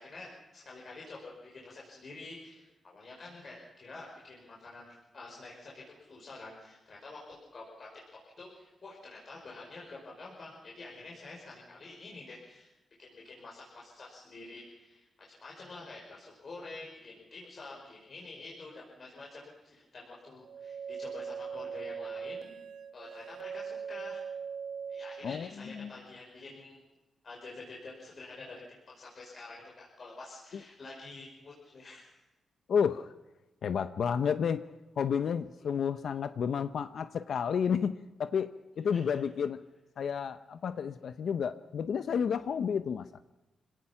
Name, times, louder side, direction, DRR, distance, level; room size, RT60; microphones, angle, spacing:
voice 1, 0.0-4.9 5.1-12.7 13.0-22.5 22.9-24.2 24.9-26.8 27.2-32.2 35.6-35.7 38.9-39.0, left 3 dB, 45° left, -3 dB, 5.3 m, -48 dB
sound 1, 20.4-25.4, right 6 dB, 85° right, 0.7 m, -40 dB
voice 2, 32.7-33.1 33.6-34.7 35.0-38.5 38.8-39.6 40.0-43.1, left 7 dB, 70° left, 11 dB, 0.7 m, -31 dB
26.0 x 17.5 x 5.8 m, 1.0 s
wide cardioid pair, 120°, 0 cm